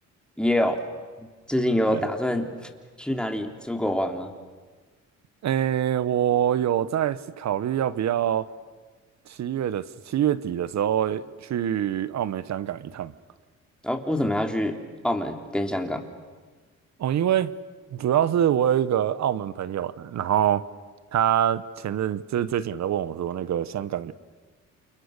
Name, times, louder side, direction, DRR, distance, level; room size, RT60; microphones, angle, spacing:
voice 1, 0.4-0.8 1.2-2.7 3.0-4.3 13.8-14.8 15.0-16.0, left 1 dB, 5° left, 4 dB, 3.5 m, -26 dB
voice 2, 5.4-8.5 9.3-13.1 17.0-17.5 17.9-20.6 21.1-24.1, right 10 dB, 65° right, 15 dB, 1.1 m, -25 dB
29.0 x 29.0 x 6.8 m, 1.4 s
cardioid pair, 90°, 30 cm